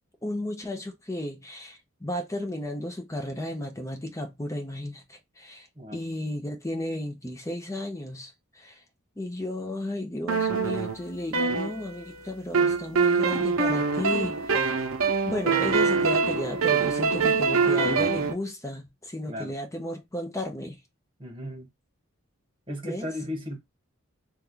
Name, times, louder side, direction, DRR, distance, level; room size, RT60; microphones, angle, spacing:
voice 1, 0.2-8.8 9.2-14.9 15.3-20.8 22.8-23.1, left 1 dB, 15° left, 0.7 m, -34 dB
sound 1, 10.3-12.1 12.5-18.3, right 5 dB, 90° right, 0.8 m, -24 dB
voice 2, 21.2-21.7 22.7-23.6, left 1 dB, 25° right, 1.1 m, -35 dB
3.0 x 2.4 x 3.7 m
head